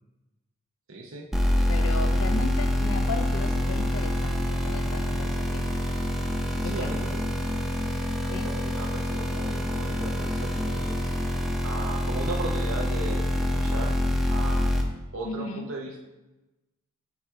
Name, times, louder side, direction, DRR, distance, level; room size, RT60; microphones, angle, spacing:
voice 1, 0.9-1.3 1.5-2.2 6.6-7.2 8.2-11.0 11.6-13.9 14.3-14.7 15.1-16.0, right 2 dB, 75° right, -1 dB, 0.8 m, -37 dB
sound 1, 1.3-14.8, left 1 dB, ahead, 0.5 m, -26 dB
voice 2, 1.7-5.7 6.8-6.9 8.3-8.5 15.2-15.7, left 3 dB, 85° left, 6 dB, 0.5 m, -35 dB
7.4 x 4.9 x 3.6 m, 1.0 s
head